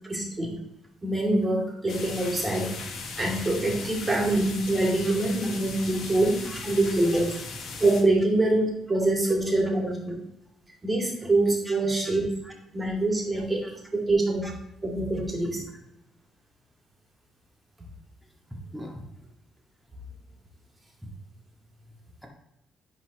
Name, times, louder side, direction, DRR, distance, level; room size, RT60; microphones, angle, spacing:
voice 1, 0.1-0.6 1.0-2.7 3.2-7.3 7.8-10.1 10.8-12.3 12.7-14.4 14.8-15.6, right 2 dB, 25° right, -2 dB, 2.7 m, -25 dB
sound 1, 1.9-8.0, left 3 dB, 75° left, 1.6 m, -38 dB
voice 2, 18.5-19.3 21.0-21.1, equal, 5° right, -1 dB, 1.9 m, -42 dB
11.0 x 4.4 x 3.0 m, 0.84 s
cardioid pair, 90°, 0 cm